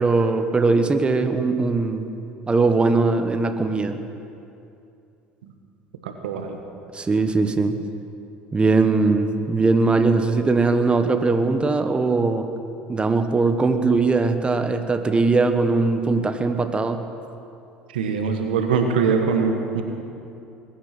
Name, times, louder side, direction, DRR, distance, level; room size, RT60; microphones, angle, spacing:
voice 1, 0.0-2.1 2.5-4.0 6.9-7.8 8.5-12.5 12.9-17.0, right 3 dB, 20° right, 7 dB, 1.3 m, -20 dB
voice 2, 6.0-6.6 17.9-19.8, right 5 dB, 85° right, 5 dB, 1.5 m, -23 dB
21.5 x 10.5 x 6.1 m, 2.7 s
hypercardioid pair, 70°, 5 cm